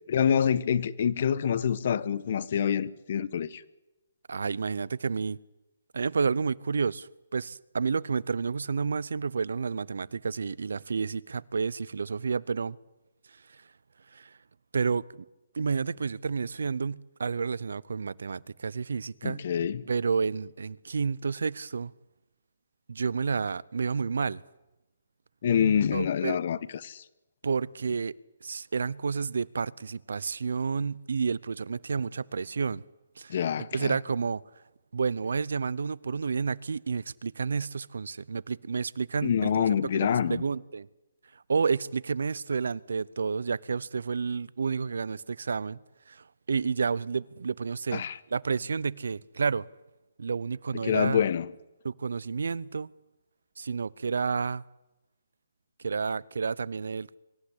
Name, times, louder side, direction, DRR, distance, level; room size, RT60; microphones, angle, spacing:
voice 1, 0.1-3.6 19.2-19.8 25.4-27.0 33.3-33.9 39.2-40.4 47.9-48.2 50.8-51.5, left 8 dB, 55° left, 1.4 m, -26 dB
voice 2, 4.3-5.4 5.9-12.8 14.1-14.3 14.7-15.2 15.5-19.4 19.9-21.9 22.9-24.4 25.9-26.4 27.4-28.1 28.4-32.8 33.2-34.4 34.9-39.5 39.9-40.9 41.5-45.8 46.1-48.0 48.3-49.6 50.2-51.2 51.8-52.9 53.6-54.6 55.8-57.2, right 5 dB, 75° right, 0.8 m, -30 dB
25.0 x 14.5 x 10.0 m
hypercardioid pair, 145°, 0 cm